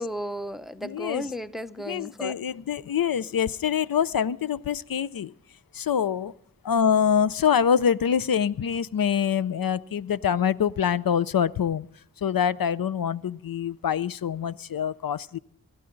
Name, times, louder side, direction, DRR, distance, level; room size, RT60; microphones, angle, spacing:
voice 1, 0.0-2.4, equal, ahead, 0.7 m, -34 dB
voice 2, 0.8-1.3 1.9-5.3 5.7-6.3 6.6-11.9 12.2-15.4, left 8 dB, 85° left, 0.5 m, -25 dB
26.0 x 12.0 x 3.8 m
wide cardioid pair, 50°, 34 cm